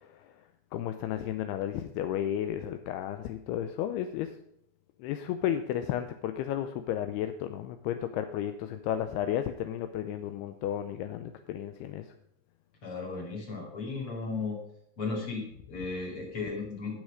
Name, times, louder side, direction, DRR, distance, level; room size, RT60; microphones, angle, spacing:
voice 1, 0.7-4.3 5.0-12.1, left 10 dB, 80° left, 9 dB, 2.5 m, -33 dB
voice 2, 12.8-14.6 15.0-17.0, left 4 dB, 40° left, 0 dB, 2.7 m, -35 dB
17.0 x 6.4 x 5.1 m, 0.74 s
omnidirectional pair, 4.8 m